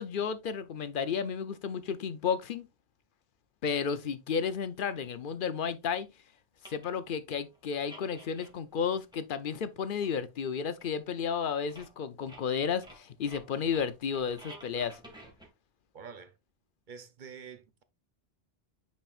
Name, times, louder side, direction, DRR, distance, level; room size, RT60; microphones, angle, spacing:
voice 1, 0.0-2.7 3.6-6.1 6.7-15.0, left 6 dB, 60° left, 0.7 m, -32 dB
sound 1, 4.6-4.7 6.0-6.1 6.6-7.1 7.3-8.8 9.1-9.7 10.0-10.1 10.5-10.6 10.8-11.4 11.6-12.0 12.3-15.5, right 1 dB, 5° right, 1.8 m, -52 dB
voice 2, 15.9-16.4 16.9-17.8, right 6 dB, 55° right, 0.8 m, -47 dB
8.9 x 4.3 x 2.4 m
omnidirectional pair, 1.1 m